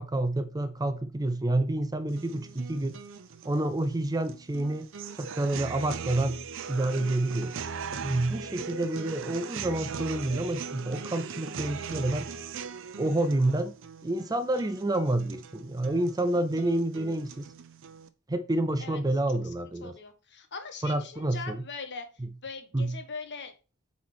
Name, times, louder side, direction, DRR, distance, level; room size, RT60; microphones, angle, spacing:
voice 1, 0.0-2.9 3.4-4.9 5.2-6.4 6.7-7.5 8.0-12.3 13.0-13.7 14.0-17.4 18.3-20.0 20.8-21.6 22.2-22.3 22.7-22.9, right 1 dB, 20° right, 0.5 m, -28 dB
sound 1, 2.1-18.1, right 5 dB, 65° right, 0.7 m, -40 dB
voice 2, 19.8-22.0 22.4-23.5, left 4 dB, 55° left, 1.4 m, -40 dB
8.3 x 4.3 x 4.6 m
head